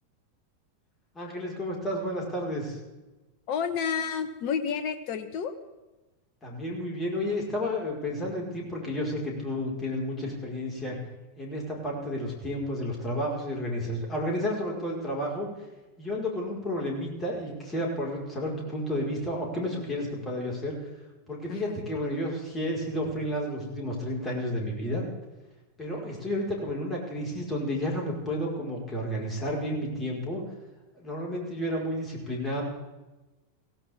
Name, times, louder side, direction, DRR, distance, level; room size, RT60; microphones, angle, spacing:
voice 1, 1.1-2.8 6.4-11.0 11.4-15.5 16.0-20.8 21.3-25.0 25.8-30.4 30.9-32.6, left 1 dB, 15° left, -2 dB, 4.9 m, -31 dB
voice 2, 3.5-5.5 21.5-21.8, left 7 dB, 40° left, 10 dB, 1.4 m, -30 dB
17.5 x 16.5 x 3.7 m, 1.1 s
figure-of-eight pair, 90°, 0 cm